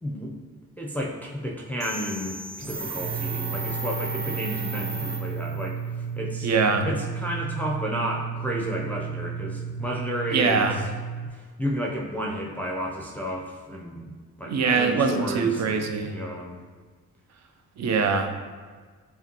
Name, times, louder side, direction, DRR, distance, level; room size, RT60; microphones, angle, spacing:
voice 1, 0.0-0.3 0.8-5.8 6.1-6.5 6.8-10.8 11.3-16.6, equal, 5° left, -2 dB, 0.6 m, -32 dB
sound 1, 1.8-5.7, right 2 dB, 85° right, 0.6 m, -35 dB
sound 2, 3.0-11.3, right 7 dB, 25° right, 1.1 m, -33 dB
voice 2, 6.4-6.9 10.3-10.8 14.4-16.1 17.8-18.4, right 5 dB, 45° right, 6 dB, 0.5 m, -23 dB
5.5 x 2.2 x 2.9 m, 1.5 s
supercardioid pair, 45°, 40 cm